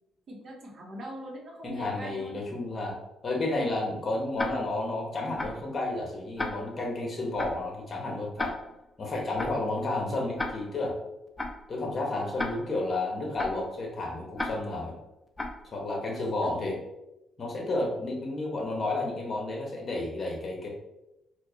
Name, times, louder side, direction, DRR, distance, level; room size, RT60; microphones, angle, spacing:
voice 1, 0.3-2.5 16.4-16.5, right 1 dB, 55° right, 0 dB, 0.9 m, -42 dB
voice 2, 1.6-3.0 3.2-8.5 9.0-10.9 11.7-14.9 15.7-16.7 17.4-20.7, left 2 dB, 40° left, 0 dB, 1.1 m, -31 dB
Tick-tock, 4.4-4.9 5.4-5.7 6.4-6.9 7.4-7.7 8.4-8.9 9.4-9.7 10.4-10.9 11.4-11.7 12.4-12.9 13.4-13.7 14.4-14.9 15.4-15.7, left 2 dB, 20° left, 0.5 m, -35 dB
4.5 x 2.2 x 2.8 m, 0.93 s
cardioid pair, 90°, 0 cm